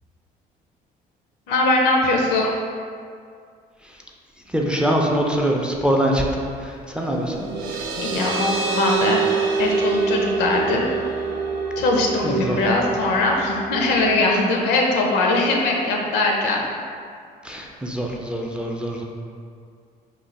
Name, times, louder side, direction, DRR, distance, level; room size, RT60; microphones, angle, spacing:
voice 1, 1.5-2.5 8.0-10.8 11.8-16.6, left 2 dB, 85° left, 0 dB, 0.6 m, -21 dB
voice 2, 4.5-7.5 12.2-12.6 17.4-19.0, equal, 5° right, -1 dB, 0.3 m, -23 dB
sound 1, 7.0-14.2, right 5 dB, 90° right, 0.4 m, -26 dB
3.1 x 2.3 x 3.9 m, 2.2 s
cardioid pair, 110°, 17 cm